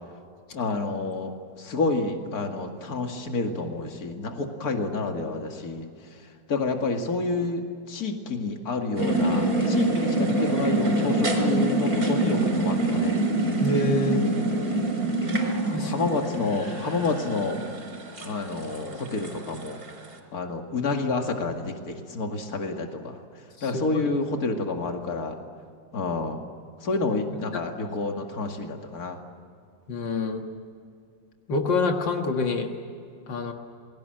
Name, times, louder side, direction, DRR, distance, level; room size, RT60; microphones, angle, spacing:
voice 1, 0.5-5.9 6.5-7.6 7.9-13.2 14.7-14.9 15.8-17.6 18.2-19.8 20.3-23.2 23.6-25.4 25.9-26.4 26.8-29.2, left 3 dB, 55° left, 3 dB, 2.7 m, -29 dB
sound 1, 9.0-20.0, right 2 dB, 55° right, 4.6 m, -25 dB
voice 2, 13.6-14.2 15.6-15.9 23.6-23.7 29.9-30.4 31.5-32.7 33.3-33.5, left 2 dB, 85° left, 3 dB, 2.5 m, -26 dB
28.5 x 22.0 x 7.9 m, 2.3 s
omnidirectional pair, 1.9 m